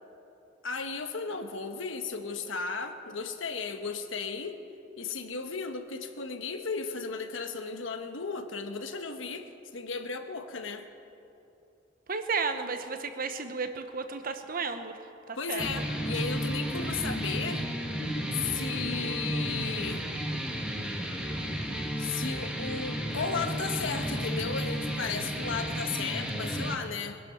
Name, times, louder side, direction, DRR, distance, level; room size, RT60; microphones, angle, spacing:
voice 1, 0.6-4.6 5.0-10.9 15.3-17.6 18.3-20.0 22.0-27.2, left 5 dB, 90° left, 7 dB, 1.2 m, -35 dB
voice 2, 12.1-15.0 15.3-15.6, right 4 dB, 50° right, 8 dB, 1.0 m, -33 dB
sound 1, 15.6-26.7, equal, 5° right, 1.4 m, -33 dB
21.5 x 11.0 x 5.9 m, 2.8 s
head